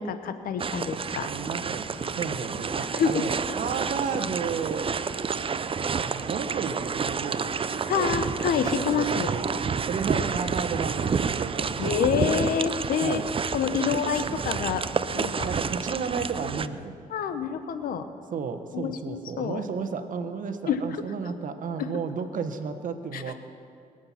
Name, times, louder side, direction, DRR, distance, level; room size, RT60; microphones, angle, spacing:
voice 1, 0.0-1.3 2.9-3.2 7.9-9.3 11.8-13.2 13.5-14.8 15.1-15.5 17.1-18.1 18.7-19.6 20.7-20.8 21.8-21.9 23.1-23.2, left 7 dB, 75° left, 10 dB, 1.1 m, -27 dB
sound 1, 0.6-16.7, right 6 dB, 35° right, 0.6 m, -29 dB
voice 2, 1.2-4.9 6.1-8.2 8.6-9.5 9.9-11.8 13.0-13.2 13.8-14.3 15.4-16.9 18.3-23.3, right 5 dB, 60° right, 9 dB, 1.3 m, -33 dB
23.0 x 7.9 x 5.9 m, 2.5 s
supercardioid pair, 65°, 15 cm